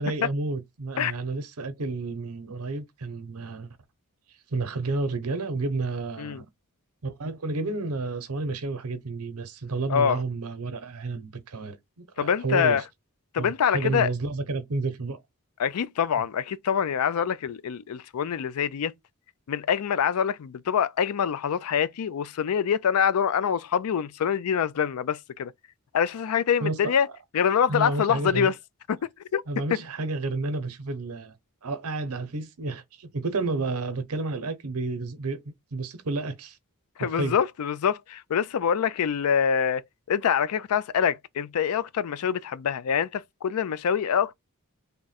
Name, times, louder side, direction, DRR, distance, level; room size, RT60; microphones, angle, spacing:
voice 1, 0.0-3.8 4.5-6.5 7.0-12.8 13.4-15.2 26.6-26.9 27.7-28.5 29.5-31.3 31.6-35.4 35.7-36.6 37.0-37.4, right 3 dB, 75° right, 0.8 m, -31 dB
voice 2, 12.2-12.8 13.3-14.1 15.6-18.9 19.5-25.5 25.9-27.1 27.3-28.5 28.9-29.0 29.3-29.4 29.7-29.8 37.0-44.3, left 7 dB, 75° left, 0.4 m, -25 dB
3.6 x 2.2 x 4.1 m
head